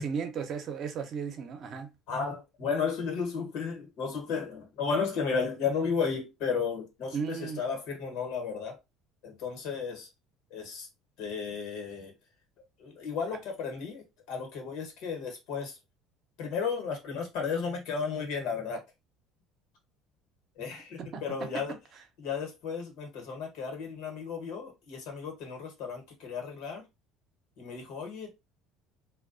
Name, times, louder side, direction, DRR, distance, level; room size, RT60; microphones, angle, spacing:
voice 1, 0.0-1.9 7.1-7.6 21.0-22.0, right 6 dB, 50° right, 0.6 m, -36 dB
voice 2, 2.1-8.8 9.2-10.1 10.5-10.9 11.2-12.1 12.8-15.7 16.4-18.8 20.6-21.7 22.2-26.8 27.6-28.3, left 5 dB, 75° left, 1.1 m, -33 dB
2.2 x 2.2 x 2.5 m
supercardioid pair, 95°, 0 cm